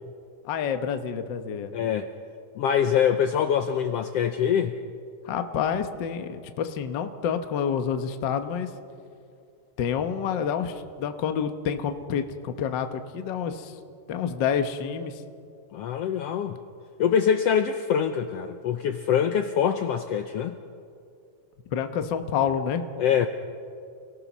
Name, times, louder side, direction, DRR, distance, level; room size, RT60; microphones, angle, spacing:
voice 1, 0.4-1.7 5.2-8.7 9.8-13.8 14.1-15.2 21.7-22.8, left 7 dB, 70° left, 7 dB, 1.0 m, -28 dB
voice 2, 1.7-2.1 2.6-4.7 15.7-16.6 17.0-20.6 23.0-23.3, left 8 dB, 85° left, 7 dB, 1.4 m, -24 dB
29.5 x 19.0 x 6.1 m, 2.4 s
omnidirectional pair, 3.7 m